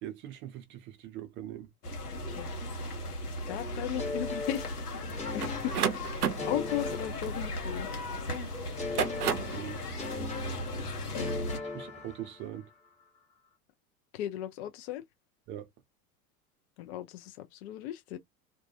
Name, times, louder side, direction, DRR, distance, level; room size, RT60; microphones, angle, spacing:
voice 1, 0.0-1.7 9.2-9.8 11.6-12.7 15.5-15.7, right 11 dB, 30° right, 0.4 m, -42 dB
sound 1, 1.8-11.6, left 1 dB, 85° left, 0.8 m, -37 dB
voice 2, 3.5-4.8 5.3-7.9 14.1-15.0 16.8-18.2, left 13 dB, 45° left, 0.5 m, -36 dB
sound 2, 4.0-7.9 8.8-12.6, left 3 dB, 15° left, 0.9 m, -39 dB
sound 3, 5.4-8.1 8.7-9.6, right 8 dB, 80° right, 0.6 m, -32 dB
2.3 x 2.2 x 2.6 m
figure-of-eight pair, 80°, 45 cm